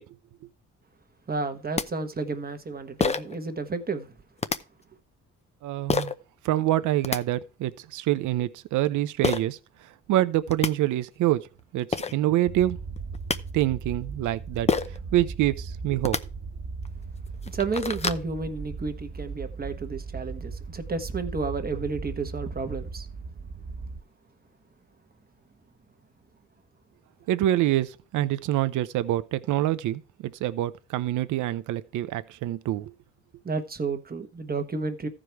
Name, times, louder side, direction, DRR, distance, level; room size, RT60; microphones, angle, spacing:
voice 1, 1.3-4.1 17.4-23.1 33.4-35.1, right 4 dB, 30° right, 1.3 m, -31 dB
sound 1, 1.4-1.5 1.8-1.9 3.0-3.4 4.4-4.6 5.9-6.1 6.8-7.2 9.2-9.4 10.2-10.3 10.5-10.7 11.6-11.7 11.9-12.1 13.0-13.4 14.7-15.0 15.9-16.2 16.8-16.9 17.3-18.2, left 4 dB, 20° left, 0.6 m, -26 dB
voice 2, 5.6-6.1 6.4-9.6 10.1-11.4 11.7-12.8 13.5-14.7 15.1-16.2 27.3-32.9, right 14 dB, 80° right, 0.7 m, -26 dB
sound 2, 12.4-24.0, right 4 dB, 50° right, 1.8 m, -37 dB
14.0 x 5.0 x 4.5 m
cardioid pair, 90°, 30 cm